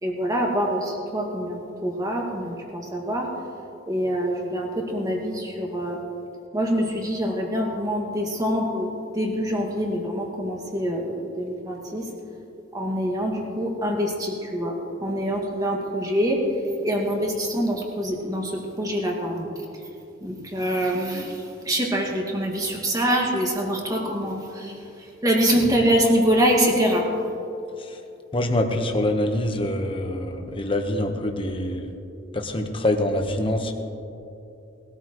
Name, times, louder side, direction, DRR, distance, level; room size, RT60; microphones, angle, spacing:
voice 1, 0.0-3.3 3.9-6.0 6.5-12.1 12.7-14.7 15.0-16.4 16.8-19.5 20.2-24.8 25.2-27.1, equal, 20° right, -1 dB, 2.0 m, -25 dB
voice 2, 28.3-31.9 32.3-33.7, left 1 dB, 25° left, 4 dB, 1.1 m, -25 dB
20.0 x 13.5 x 3.1 m, 2.9 s
head